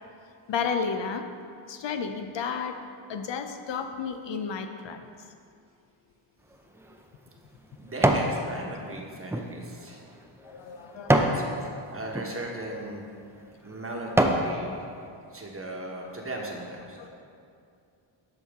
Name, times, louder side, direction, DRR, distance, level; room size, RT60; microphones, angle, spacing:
voice 1, 0.5-1.3 1.7-2.8 3.1-5.0 10.4-11.2 17.0-17.1, left 6 dB, 65° left, 7 dB, 0.6 m, -32 dB
sound 1, 6.5-8.4 8.8-11.4 12.0-12.3 13.0-13.1 13.6-14.5 15.0-15.1, right 1 dB, 5° right, 0.4 m, -26 dB
voice 2, 7.8-10.1 11.1-13.0 13.6-14.8 15.3-17.1, right 1 dB, 25° right, -1 dB, 1.2 m, -38 dB
12.5 x 4.6 x 3.6 m, 2.4 s
cardioid pair, 95°, 49 cm